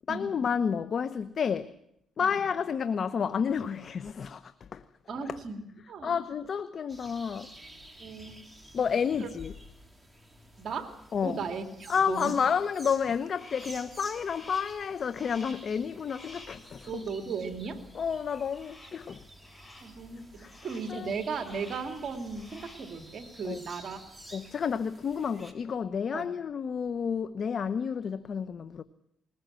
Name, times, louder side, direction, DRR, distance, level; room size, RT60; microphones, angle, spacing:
voice 1, 0.1-1.7 2.2-4.8 5.2-5.4 6.0-7.5 8.7-9.5 11.1-11.4 11.9-17.0 17.9-19.2 20.4-20.6 20.9-21.1 23.4-23.6 24.3-28.8, left 6 dB, 50° left, 0.9 m, -30 dB
voice 2, 5.1-5.6 5.9-6.2 8.0-8.4 9.2-9.3 10.6-10.9 11.2-12.3 16.9-17.8 19.8-24.0 26.1-26.3, right 5 dB, 55° right, 2.9 m, -36 dB
sound 1, 6.9-25.5, right 1 dB, 10° right, 3.5 m, -51 dB
Crow, 13.4-13.9 14.2-14.8 15.1-15.7 16.1-16.6 18.5-19.1 19.4-20.0 20.4-21.0 21.4-22.0 22.3-22.9, left 2 dB, 20° left, 7.2 m, -50 dB
21.0 x 20.5 x 7.6 m
cardioid pair, 90°, 0 cm